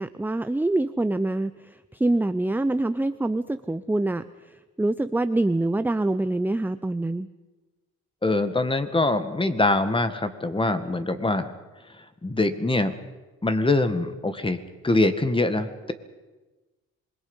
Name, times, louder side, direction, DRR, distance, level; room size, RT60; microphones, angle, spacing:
voice 1, 0.0-4.2 4.8-7.3, right 2 dB, 5° right, 12 dB, 0.6 m, -25 dB
voice 2, 8.2-11.5 12.2-12.9 13.4-14.6 14.8-15.9, left 2 dB, 15° left, 10 dB, 1.9 m, -23 dB
27.0 x 21.5 x 5.6 m, 1.2 s
cardioid pair, 90°, 30 cm